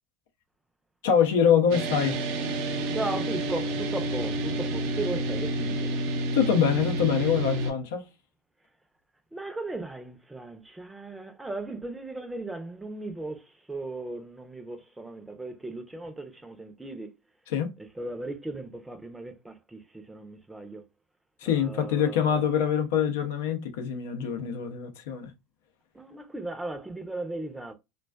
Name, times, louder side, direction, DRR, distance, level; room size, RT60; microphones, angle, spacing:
voice 1, 1.0-2.2 6.3-8.1 17.5-17.7 21.4-25.3, left 8 dB, 75° left, 0.5 m, -24 dB
sound 1, 1.7-7.7, right 1 dB, 70° right, 0.6 m, -29 dB
voice 2, 2.9-6.0 9.3-17.1 17.8-20.9 21.5-22.5 25.9-27.7, right 2 dB, 10° right, 0.6 m, -37 dB
2.4 x 2.3 x 2.2 m
hypercardioid pair, 85°, 0 cm